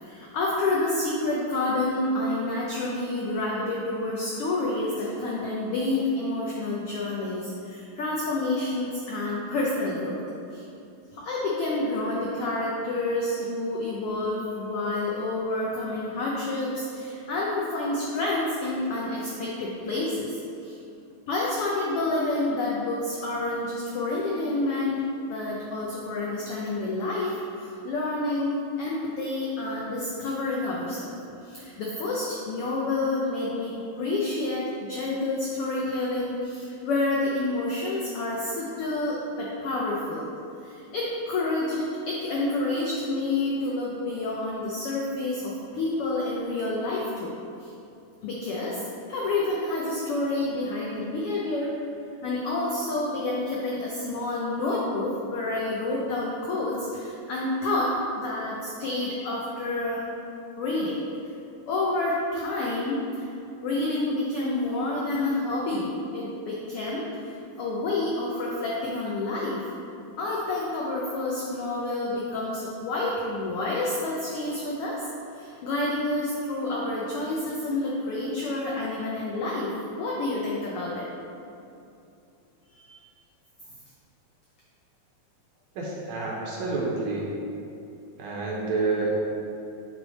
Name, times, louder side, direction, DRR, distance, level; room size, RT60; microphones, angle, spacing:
voice 1, 0.0-10.2 10.5-10.6 11.1-20.8 21.3-25.0 25.3-31.1 31.4-40.3 40.6-47.3 47.6-47.7 48.2-48.8 49.1-51.7 52.2-60.1 60.6-61.0 61.7-63.3 63.6-69.6 70.2-75.0 75.3-81.1 82.7-82.9, left 2 dB, 90° left, -4 dB, 1.2 m, -29 dB
voice 2, 85.8-87.3 88.2-89.1, right 3 dB, 70° right, -4 dB, 2.1 m, -28 dB
7.8 x 3.3 x 4.0 m, 2.7 s
omnidirectional pair, 3.4 m